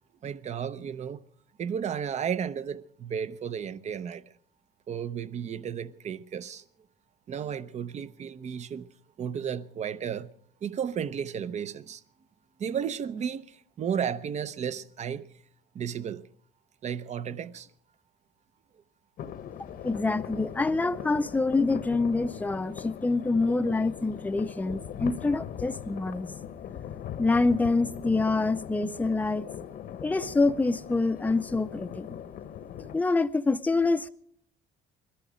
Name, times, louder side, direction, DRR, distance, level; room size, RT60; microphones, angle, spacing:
voice 1, 0.2-1.2 1.6-4.2 4.9-6.6 7.3-8.9 9.2-10.3 10.6-12.0 12.6-15.3 15.7-16.3 16.8-17.7, right 8 dB, 40° right, 0.7 m, -33 dB
sound 1, 19.2-33.0, left 9 dB, 60° left, 1.0 m, -40 dB
voice 2, 19.8-26.3 27.2-29.5 30.0-32.1 32.9-34.1, left 3 dB, 10° left, 0.6 m, -26 dB
21.0 x 13.5 x 5.0 m
cardioid pair, 110°, 17 cm